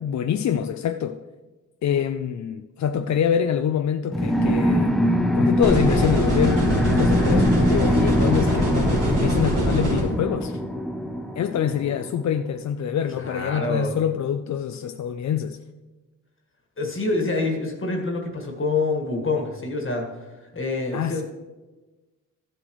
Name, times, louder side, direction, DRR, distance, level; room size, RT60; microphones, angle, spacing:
voice 1, 0.0-1.2 1.8-4.9 5.4-10.6 11.4-15.6 20.9-21.2, left 8 dB, 60° left, 7 dB, 0.4 m, -25 dB
sound 1, 4.1-12.3, equal, ahead, 0.6 m, -23 dB
sound 2, 5.6-10.0, right 1 dB, 65° right, 3.1 m, -23 dB
voice 2, 13.1-13.9 16.8-20.1 20.4-21.2, left 3 dB, 40° left, 1 dB, 1.6 m, -26 dB
14.0 x 7.7 x 3.1 m, 1.2 s
wide cardioid pair, 120°, 33 cm